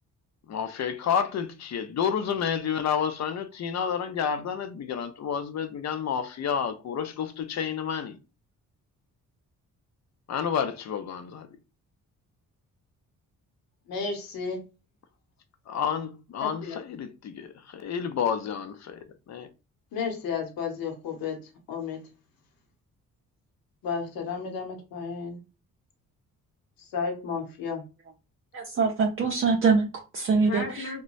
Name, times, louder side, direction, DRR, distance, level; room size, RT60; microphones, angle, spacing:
voice 1, 0.5-8.2 10.3-11.5 15.7-19.5, left 7 dB, 55° left, 0.6 m, -30 dB
voice 2, 13.9-14.6 16.4-16.8 19.9-22.1 23.8-25.4 26.9-27.8 30.4-31.0, left 5 dB, 85° left, 0.8 m, -33 dB
voice 3, 28.5-30.9, right 4 dB, 40° right, 0.5 m, -24 dB
3.0 x 2.2 x 2.5 m
cardioid pair, 80°, 34 cm